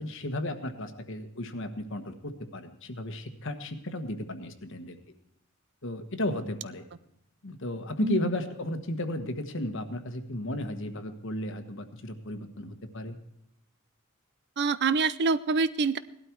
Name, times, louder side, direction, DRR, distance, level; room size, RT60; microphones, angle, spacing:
voice 1, 0.0-5.0 5.8-6.8 7.4-13.2, left 1 dB, 60° left, 8 dB, 1.4 m, -34 dB
voice 2, 14.6-16.0, right 4 dB, 55° right, 16 dB, 0.6 m, -26 dB
17.5 x 12.0 x 4.6 m, 0.81 s
head